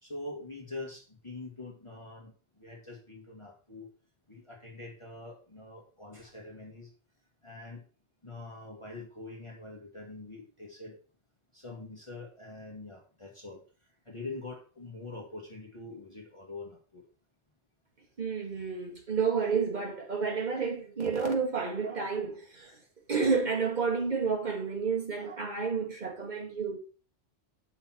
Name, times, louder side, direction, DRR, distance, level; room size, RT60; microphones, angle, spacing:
voice 1, 0.0-3.9 4.3-6.9 7.4-7.8 8.2-11.0 11.5-17.1, left 2 dB, 25° left, 1.9 m, -44 dB
voice 2, 18.2-22.8 23.1-26.8, right 5 dB, 40° right, 1.9 m, -30 dB
8.4 x 5.8 x 4.4 m
omnidirectional pair, 1.2 m